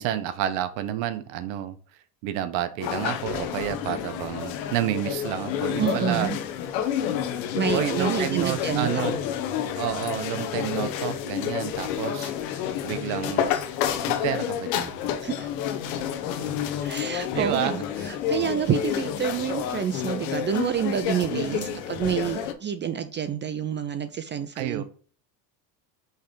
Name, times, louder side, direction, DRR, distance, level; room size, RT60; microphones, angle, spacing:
voice 1, 0.0-1.8 2.2-6.3 7.7-9.2 9.8-13.5 14.1-15.0 15.9-16.0 17.3-17.8 21.3-21.9 24.6-24.8, right 12 dB, 70° right, 12 dB, 0.9 m, -30 dB
sound 1, 2.8-22.5, left 9 dB, 80° left, 1.1 m, -29 dB
voice 2, 5.8-6.4 7.5-9.1 15.2-15.5 16.8-24.8, right 8 dB, 25° right, 11 dB, 0.3 m, -28 dB
5.5 x 3.4 x 5.3 m, 0.42 s
supercardioid pair, 105°, 50 cm